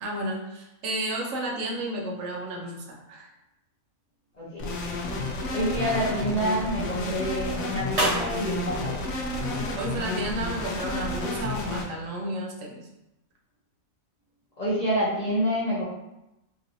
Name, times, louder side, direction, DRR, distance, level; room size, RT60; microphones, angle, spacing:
voice 1, 0.0-3.3 9.8-12.9, right 1 dB, 70° right, -1 dB, 1.0 m, -32 dB
sound 1, 4.3-10.3, right 1 dB, 55° right, 1.3 m, -36 dB
voice 2, 4.4-4.7 5.5-9.1 14.6-15.8, equal, 45° left, -10 dB, 0.6 m, -27 dB
sound 2, 4.6-11.8, left 2 dB, 65° left, 0.9 m, -31 dB
3.0 x 2.8 x 2.6 m, 0.92 s
omnidirectional pair, 1.5 m